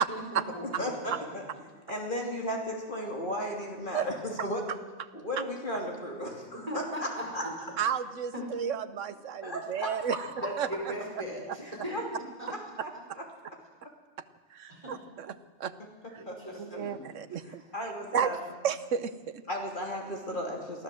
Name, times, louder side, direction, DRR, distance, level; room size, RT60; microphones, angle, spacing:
voice 1, 0.1-0.9 6.7-7.5 8.3-8.4 10.4-12.5 14.7-15.0 16.2-17.1, equal, 25° right, -2 dB, 5.6 m, -38 dB
voice 2, 0.8-1.4 1.9-4.6 5.1-7.4 9.4-10.2 11.6-12.0 12.5-12.9 13.2-13.3 16.3-16.8 17.4-18.4 19.5-20.8, equal, 40° left, 0 dB, 3.0 m, -35 dB
voice 3, 7.8-10.2 10.6-10.7 14.5-15.3 15.6-15.7 16.6-17.6 18.1-18.3 18.6-19.4, right 7 dB, 70° right, 12 dB, 1.3 m, -31 dB
23.5 x 15.0 x 7.7 m, 1.4 s
omnidirectional pair, 1.3 m